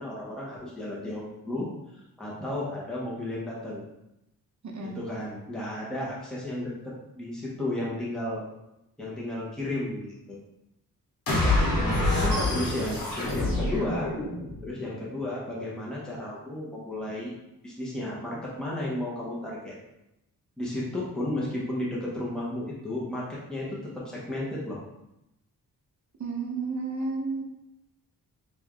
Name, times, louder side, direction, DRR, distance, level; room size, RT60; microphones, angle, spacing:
voice 1, 0.0-1.7 1.9-3.8 4.9-8.5 9.0-10.4 12.2-14.1 14.6-17.3 17.6-19.8 20.6-24.8, left 1 dB, ahead, -6 dB, 0.9 m, -33 dB
voice 2, 4.6-5.0 11.8-12.5 26.2-27.4, right 3 dB, 50° right, 1 dB, 0.9 m, -32 dB
sound 1, 11.3-14.6, left 2 dB, 60° left, 1.4 m, -26 dB
3.4 x 3.4 x 3.6 m, 0.87 s
wide cardioid pair, 140°, 37 cm